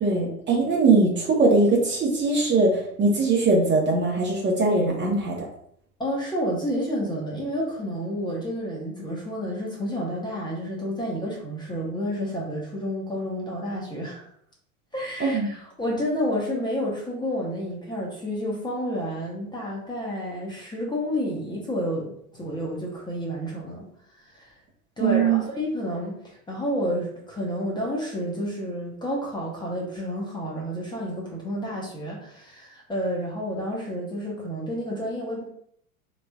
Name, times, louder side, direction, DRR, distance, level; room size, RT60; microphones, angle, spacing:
voice 1, 0.0-5.3 15.2-15.5 25.0-25.4, right 3 dB, 25° right, -2 dB, 0.9 m, -21 dB
voice 2, 6.0-14.2 14.9-23.8 24.3-24.5 25.0-26.2 26.5-35.5, equal, 10° left, -4 dB, 0.9 m, -30 dB
3.7 x 3.2 x 2.3 m, 0.68 s
hypercardioid pair, 100°, 44 cm